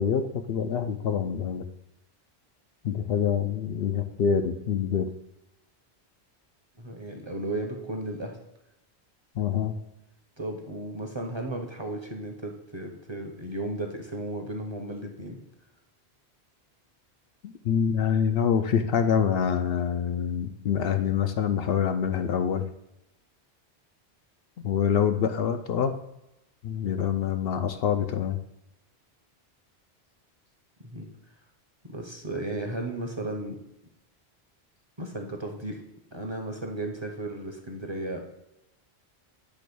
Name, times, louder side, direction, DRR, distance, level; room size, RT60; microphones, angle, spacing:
voice 1, 0.0-1.6 2.8-5.1 9.4-9.8 17.4-22.7 24.6-25.9 26.6-28.4, left 7 dB, 65° left, 7 dB, 0.7 m, -26 dB
voice 2, 6.8-8.4 10.4-15.4 30.8-31.1 31.8-33.6 35.0-35.8 36.1-38.2, right 1 dB, 30° right, 3 dB, 0.8 m, -34 dB
8.4 x 3.0 x 6.1 m, 0.88 s
omnidirectional pair, 1.1 m